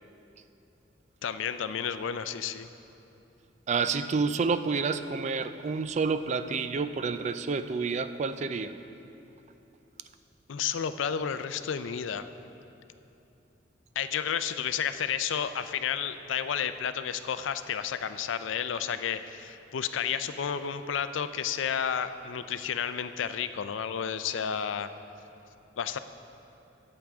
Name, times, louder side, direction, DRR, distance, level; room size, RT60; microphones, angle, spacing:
voice 1, 1.2-2.7 10.5-12.3 14.0-24.9 25.8-26.0, left 8 dB, 80° left, 11 dB, 0.4 m, -31 dB
voice 2, 3.7-8.7, right 4 dB, 40° right, 10 dB, 0.3 m, -29 dB
13.5 x 8.7 x 3.5 m, 2.9 s
head